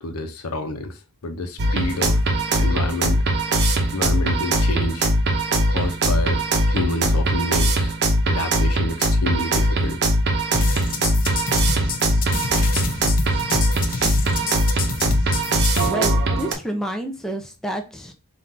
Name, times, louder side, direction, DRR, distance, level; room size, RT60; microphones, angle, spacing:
voice 1, 0.0-2.2 2.6-5.1 5.7-8.0 8.3-10.0, left 2 dB, 80° left, 0.8 m, -29 dB
sound 1, 1.6-16.5, right 1 dB, 50° right, 0.8 m, -20 dB
sound 2, 10.5-15.9, left 5 dB, 40° left, 0.6 m, -29 dB
voice 2, 15.8-18.1, right 1 dB, ahead, 0.5 m, -29 dB
3.7 x 2.5 x 4.3 m
head